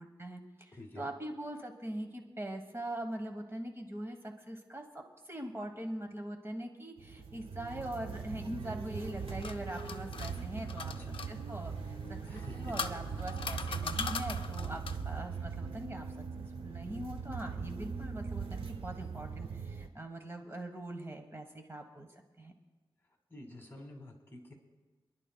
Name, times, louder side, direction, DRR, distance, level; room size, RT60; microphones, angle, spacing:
voice 1, 0.0-10.9 11.3-16.0 16.4-22.1 22.4-22.5, right 1 dB, 30° right, 4 dB, 1.2 m, -42 dB
voice 2, 0.7-1.1 10.9-11.1 12.3-12.9 23.3-24.5, left 1 dB, 25° left, 1 dB, 2.1 m, -49 dB
sound 1, 7.0-19.9, right 5 dB, 85° right, 0.8 m, -40 dB
sound 2, 9.0-11.3 12.3-15.1, left 5 dB, 75° left, 0.6 m, -40 dB
27.0 x 11.0 x 2.3 m, 1.3 s
wide cardioid pair, 110°, 9 cm